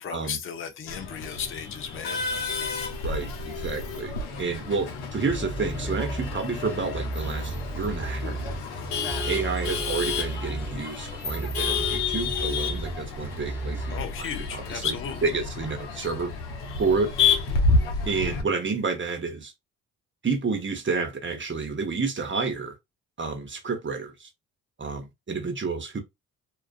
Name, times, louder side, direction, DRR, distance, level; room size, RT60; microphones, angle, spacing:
voice 1, 0.0-2.2 13.9-15.3, left 7 dB, 30° left, 0.6 m, -34 dB
Male speech man speaking / Laughter / Chatter, 0.9-18.4, left 4 dB, 70° left, 0.8 m, -30 dB
voice 2, 3.0-8.4 9.3-14.9 15.2-16.3 16.8-17.1 18.0-19.5 20.2-22.7 23.2-24.3 24.8-26.0, right 4 dB, 25° right, 0.9 m, -30 dB
sound 1, 5.3-14.0, right 2 dB, 5° right, 1.1 m, -34 dB
2.3 x 2.3 x 2.5 m
hypercardioid pair, 45°, 43 cm